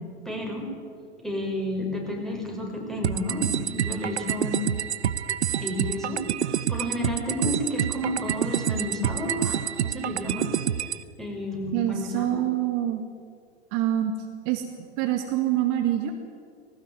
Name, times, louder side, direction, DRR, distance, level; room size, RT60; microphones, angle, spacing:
voice 1, 0.2-0.7 1.2-4.5 5.6-10.5 11.2-12.4, equal, ahead, 0 dB, 6.2 m, -31 dB
sound 1, 3.0-11.0, right 9 dB, 80° right, 0.9 m, -27 dB
voice 2, 11.7-13.0 13.7-14.1 14.5-14.6 15.0-16.1, right 12 dB, 45° right, 5 dB, 2.3 m, -25 dB
20.0 x 18.0 x 9.2 m, 2.1 s
hypercardioid pair, 105°, 33 cm